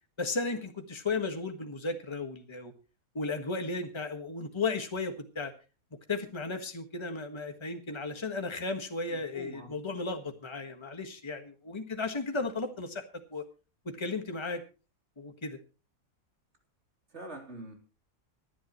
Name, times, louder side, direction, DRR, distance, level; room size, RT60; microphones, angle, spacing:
voice 1, 0.2-2.7 3.1-5.5 6.1-13.0 13.3-13.5 13.8-14.6 15.2-15.6, left 3 dB, 20° left, 5 dB, 1.6 m, -35 dB
voice 2, 9.1-9.7 17.1-17.7, right 1 dB, 50° right, 2 dB, 3.6 m, -44 dB
25.0 x 10.0 x 3.1 m, 0.33 s
omnidirectional pair, 1.5 m